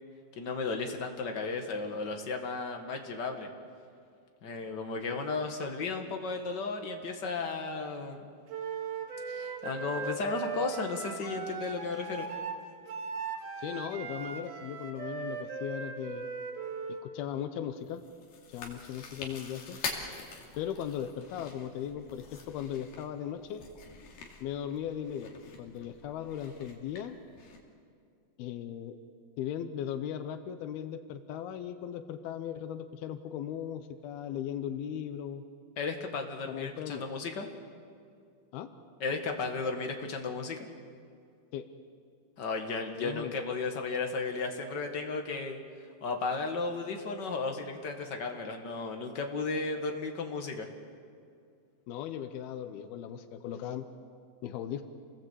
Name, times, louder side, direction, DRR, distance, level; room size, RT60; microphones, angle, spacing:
voice 1, 0.4-3.5 4.4-8.3 9.2-12.3 35.8-37.5 39.0-40.7 42.4-45.6 46.0-50.7, left 4 dB, 40° left, 4 dB, 1.6 m, -34 dB
Wind instrument woodwind instrument, 8.5-17.0, right 5 dB, 55° right, 2.3 m, -38 dB
voice 2, 13.6-16.2 16.9-18.0 18.5-19.8 20.6-23.6 24.4-27.2 28.4-29.0 29.4-35.4 36.5-37.1 38.5-38.7 41.5-41.7 43.0-43.3 51.9-53.9 54.4-54.8, left 9 dB, 85° left, 9 dB, 2.9 m, -38 dB
Chewing mastication, 17.8-27.6, left 5 dB, 65° left, 4.1 m, -45 dB
28.5 x 19.5 x 8.2 m, 2.3 s
omnidirectional pair, 4.3 m